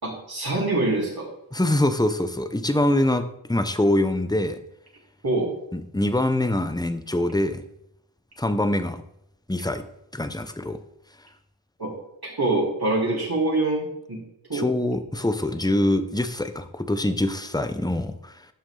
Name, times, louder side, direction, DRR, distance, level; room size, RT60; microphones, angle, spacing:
voice 1, 0.0-1.3 5.2-5.5 11.8-11.9 12.2-14.2 14.5-14.7, right 2 dB, 55° right, -5 dB, 3.9 m, -25 dB
voice 2, 1.5-4.6 5.7-7.6 8.4-9.0 9.5-9.8 10.1-10.8 14.5-18.5, left 1 dB, 10° left, 9 dB, 0.8 m, -24 dB
11.5 x 6.0 x 3.9 m, 0.77 s
wide cardioid pair, 50°, 45 cm